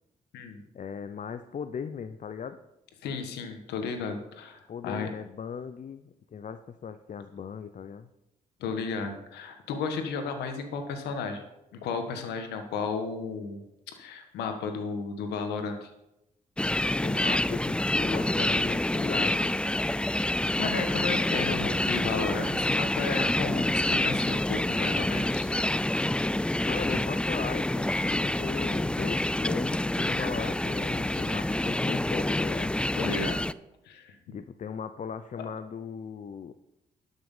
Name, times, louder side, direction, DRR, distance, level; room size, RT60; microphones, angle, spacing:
voice 1, 0.7-2.6 4.7-8.1 17.0-19.6 26.6-32.7 34.3-36.5, left 6 dB, 50° left, 10 dB, 0.7 m, -38 dB
voice 2, 3.0-5.1 8.6-11.4 11.7-13.6 13.9-15.9 20.3-25.5 26.9-27.0 33.0-33.4 33.8-34.2 35.4-35.5, left 5 dB, 85° left, 6 dB, 1.5 m, -34 dB
sound 1, 16.6-33.5, left 1 dB, 5° left, 0.4 m, -27 dB
12.0 x 6.4 x 5.6 m, 0.89 s
supercardioid pair, 50°, 17 cm